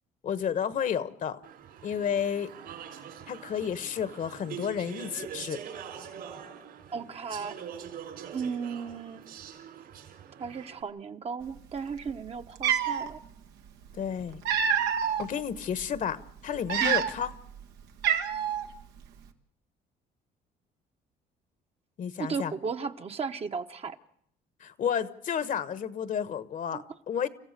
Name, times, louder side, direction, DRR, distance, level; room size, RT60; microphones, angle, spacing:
voice 1, 0.2-1.4 1.8-2.5 3.3-5.6 14.0-14.4 15.2-17.3 22.0-22.5 24.6-27.3, left 8 dB, 50° left, 13 dB, 1.2 m, -31 dB
Speech / Chatter, 1.4-10.8, right 8 dB, 65° right, 4.1 m, -44 dB
voice 2, 6.9-7.6 8.3-9.2 10.4-13.2 16.8-17.0 22.2-24.0 26.7-26.8, right 5 dB, 35° right, 7 dB, 1.1 m, -35 dB
Cat, 12.1-12.2 12.6-13.1 14.1-15.2 15.8-16.0 16.6-17.4 17.6-17.7 18.0-18.7, right 8 dB, 85° right, 1.6 m, -26 dB
30.0 x 15.0 x 6.7 m, 0.67 s
cardioid pair, 110°, 17 cm